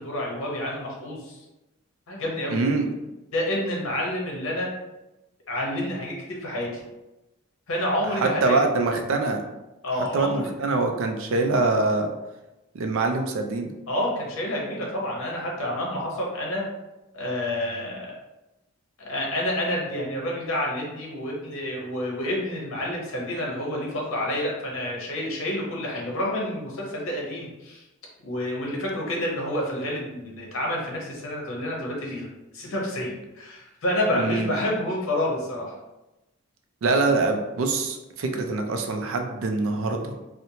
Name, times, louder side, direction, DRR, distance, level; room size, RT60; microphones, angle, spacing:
voice 1, 0.0-1.4 2.1-2.6 3.3-4.7 5.5-6.8 7.7-8.7 9.8-10.5 13.9-16.6 17.1-18.1 19.0-27.8 28.2-32.3 32.5-35.7, left 1 dB, 65° left, -2 dB, 0.7 m, -29 dB
voice 2, 2.5-2.9 8.2-9.4 10.0-12.1 12.7-13.8 34.1-34.5 36.8-40.2, right 3 dB, 60° right, 4 dB, 0.3 m, -24 dB
2.9 x 2.0 x 2.6 m, 1.0 s
head